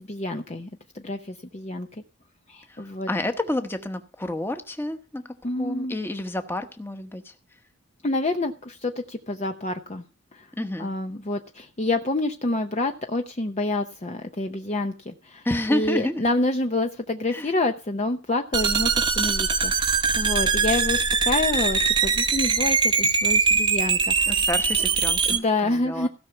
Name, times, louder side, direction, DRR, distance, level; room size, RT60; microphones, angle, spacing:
voice 1, 0.1-0.7 0.9-1.9 2.5-3.1 5.4-6.0 8.0-10.0 10.3-10.4 10.8-15.4 15.7-24.4 25.3-26.1, left 2 dB, 30° left, 5 dB, 0.6 m, -27 dB
voice 2, 3.1-5.2 5.6-7.3 10.6-10.9 15.4-16.2 17.3-17.5 24.3-26.1, left 1 dB, 10° left, 8 dB, 1.0 m, -29 dB
sound 1, 18.5-25.4, right 5 dB, 20° right, 0.8 m, -22 dB
16.0 x 5.7 x 6.9 m, 0.35 s
head